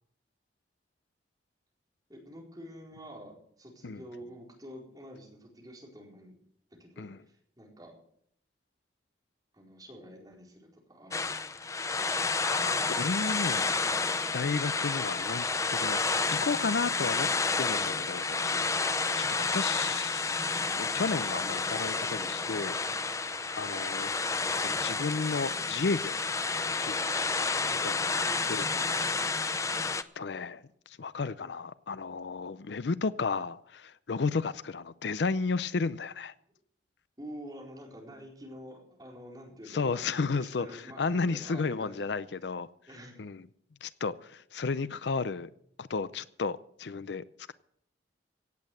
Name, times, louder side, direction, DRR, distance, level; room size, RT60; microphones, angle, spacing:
voice 1, 2.1-6.3 6.8-8.0 9.5-11.5 23.6-23.9 27.6-28.0 28.2-29.3 34.2-34.3 37.2-42.0 42.9-43.2, equal, 20° right, 4.3 m, -48 dB
sound 1, 11.1-30.0, left 4 dB, 15° left, 0.5 m, -30 dB
voice 2, 12.4-13.7 14.3-17.3 17.6-20.5 20.8-23.0 23.6-24.1 24.6-26.2 26.8-27.2 27.8-28.7 30.2-36.3 39.7-42.7 43.2-43.4 43.8-45.5 45.8-47.5, left 4 dB, 70° left, 0.5 m, -33 dB
17.0 x 8.6 x 7.7 m
head